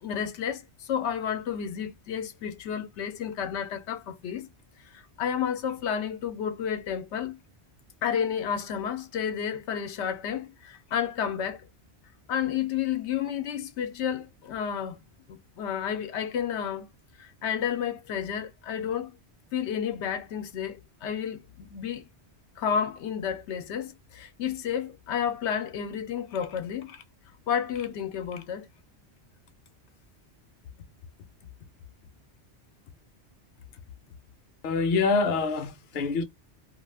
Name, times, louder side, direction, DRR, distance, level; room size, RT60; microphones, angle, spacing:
voice 1, 0.0-4.5 4.8-7.3 8.0-11.7 12.3-15.0 15.3-16.9 17.2-19.2 19.5-22.0 22.6-27.0 27.5-28.7, left 8 dB, 85° left, 0.9 m, -31 dB
voice 2, 34.6-36.2, left 4 dB, 55° left, 0.7 m, -25 dB
2.4 x 2.4 x 3.2 m
omnidirectional pair, 1.1 m